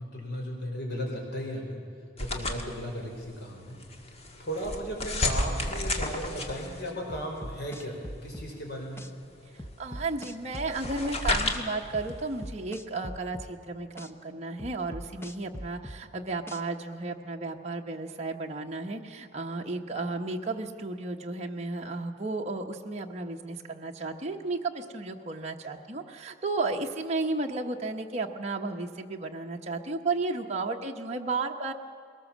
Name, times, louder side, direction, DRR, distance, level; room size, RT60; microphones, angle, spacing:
voice 1, 0.0-1.8 2.2-3.8 4.4-8.0 8.2-9.1, equal, 60° left, 0 dB, 4.8 m, -36 dB
sound 1, 2.2-12.5, left 1 dB, 35° left, 1.8 m, -34 dB
sound 2, 7.1-8.5 9.0-9.1 9.6-11.0 11.5-11.6 11.9-13.5 14.0-14.1 14.6-16.0 16.5-16.6, equal, 15° left, 0.9 m, -41 dB
voice 2, 9.8-31.7, right 3 dB, 35° right, 1 dB, 1.1 m, -33 dB
21.5 x 19.0 x 7.4 m, 2.3 s
head